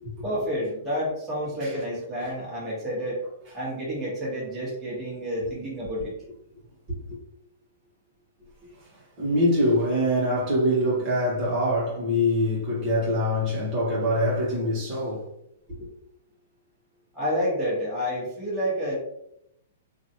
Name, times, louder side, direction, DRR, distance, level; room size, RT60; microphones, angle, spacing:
voice 1, 0.2-3.2 3.5-6.1 17.1-18.9, equal, 15° right, 1.4 m, -29 dB
voice 2, 9.2-15.3 15.8-15.9, equal, 35° right, 1.2 m, -24 dB
2.9 x 2.5 x 2.8 m
hypercardioid pair, 140°, 0 cm